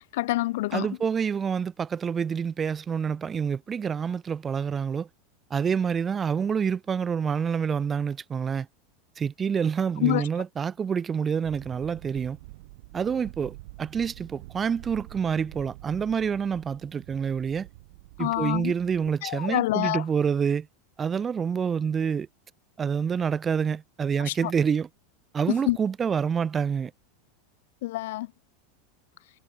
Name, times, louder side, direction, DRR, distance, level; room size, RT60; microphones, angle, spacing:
voice 1, 0.0-0.9 10.0-10.2 18.2-18.7 19.2-20.0 24.3-24.4 25.7-25.8 27.8-28.3, left 18 dB, 70° left, 1.1 m, -26 dB
voice 2, 0.7-5.1 5.5-8.7 9.2-12.4 12.9-17.7 18.2-20.7 21.0-22.3 22.8-24.9 25.3-26.9, right 7 dB, 20° right, 1.6 m, -27 dB
sound 1, 11.4-19.2, right 21 dB, 65° right, 2.5 m, -46 dB
supercardioid pair, 145°, 0 cm